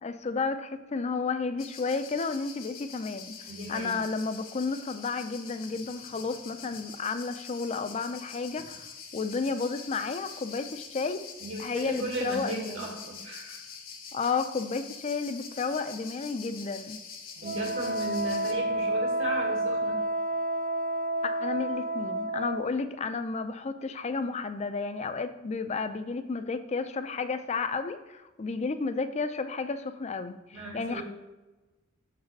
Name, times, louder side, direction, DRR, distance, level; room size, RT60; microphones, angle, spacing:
voice 1, 0.0-3.4 3.7-11.2 11.6-12.9 14.1-17.0 21.2-31.0, left 4 dB, 35° left, 10 dB, 0.4 m, -32 dB
sound 1, 1.6-18.5, left 6 dB, 75° left, 1.2 m, -45 dB
voice 2, 3.5-4.0 11.4-13.6 17.4-20.0 30.5-31.0, right 1 dB, 70° right, -1 dB, 2.0 m, -36 dB
Wind instrument woodwind instrument, 17.4-22.7, right 1 dB, 40° right, 0.6 m, -30 dB
6.8 x 4.0 x 5.2 m, 1.1 s
head